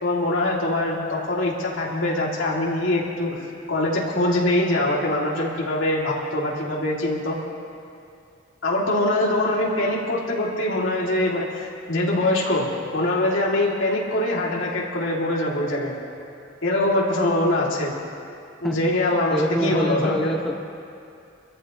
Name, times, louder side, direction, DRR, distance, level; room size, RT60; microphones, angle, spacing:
voice 1, 0.0-7.4 8.6-16.0 16.6-17.9 18.6-20.4, left 1 dB, 85° left, -3 dB, 2.9 m, -23 dB
voice 2, 18.6-19.0 19.3-20.6, equal, ahead, 3 dB, 0.5 m, -26 dB
27.0 x 14.0 x 3.2 m, 2.5 s
head